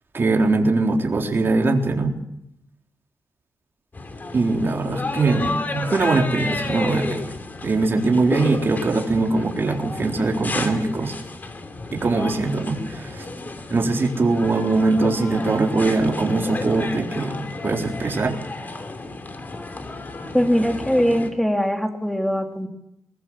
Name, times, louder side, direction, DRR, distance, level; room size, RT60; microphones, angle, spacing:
voice 1, 0.1-2.1 4.3-7.3 7.6-11.1 11.9-13.3 13.7-18.4, right 3 dB, 40° right, 2 dB, 3.8 m, -21 dB
sound 1, 3.9-21.3, left 3 dB, 30° left, 3.2 m, -32 dB
voice 2, 20.3-22.7, equal, 5° left, 4 dB, 3.1 m, -21 dB
22.5 x 20.0 x 7.5 m, 0.79 s
wide cardioid pair, 110°, 6 cm